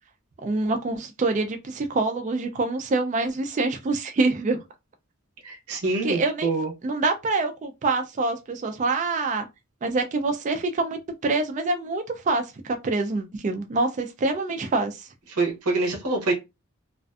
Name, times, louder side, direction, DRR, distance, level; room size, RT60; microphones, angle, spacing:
voice 1, 0.4-4.6 6.0-6.5 6.8-9.5 9.8-15.1, right 3 dB, 35° right, 0.3 m, -26 dB
voice 2, 5.4-6.7 15.3-16.3, right 3 dB, 85° right, 0.8 m, -25 dB
2.4 x 2.4 x 2.3 m
head